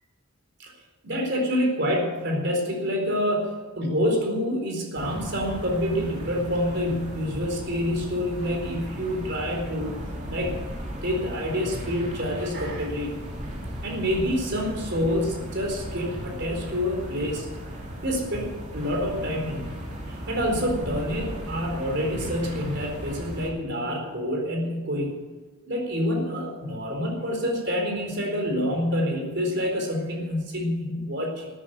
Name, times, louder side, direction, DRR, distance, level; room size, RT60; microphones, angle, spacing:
voice 1, 1.0-10.0 10.3-10.6 11.0-13.1 13.8-17.5 18.0-19.7 20.3-25.1 25.7-31.5, equal, 55° right, 1 dB, 4.3 m, -27 dB
sound 1, 5.0-23.5, equal, 35° right, 3.0 m, -36 dB
14.0 x 9.4 x 9.4 m, 1.3 s
head